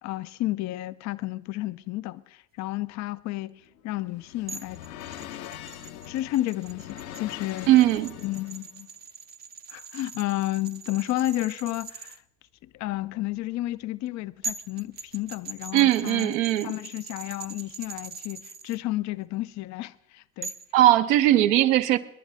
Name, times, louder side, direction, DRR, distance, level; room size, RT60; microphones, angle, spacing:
voice 1, 0.0-3.6 3.8-4.8 6.1-7.7 8.2-8.9 9.7-12.2 12.6-16.3 16.6-20.5, left 16 dB, 40° left, 0.6 m, -31 dB
sound 1, 3.6-8.7, left 11 dB, 70° left, 1.1 m, -42 dB
sound 2, 4.5-12.2 14.1-14.2 14.4-18.8 20.4-20.7, right 4 dB, 20° right, 0.7 m, -42 dB
voice 2, 7.7-8.2 15.7-16.7 20.7-22.0, right 14 dB, 60° right, 1.0 m, -19 dB
27.0 x 11.0 x 3.5 m
hypercardioid pair, 75°, 44 cm